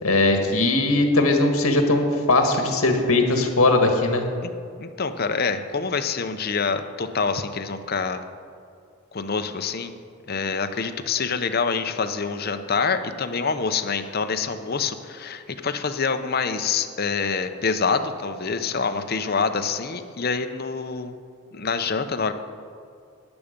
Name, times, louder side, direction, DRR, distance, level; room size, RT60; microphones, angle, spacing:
voice 1, 0.0-4.3, left 2 dB, 80° left, 4 dB, 1.6 m, -19 dB
voice 2, 4.8-8.2 9.1-9.9 10.3-21.1 21.5-22.3, left 5 dB, 45° left, 8 dB, 0.7 m, -26 dB
14.0 x 10.0 x 5.2 m, 2.3 s
head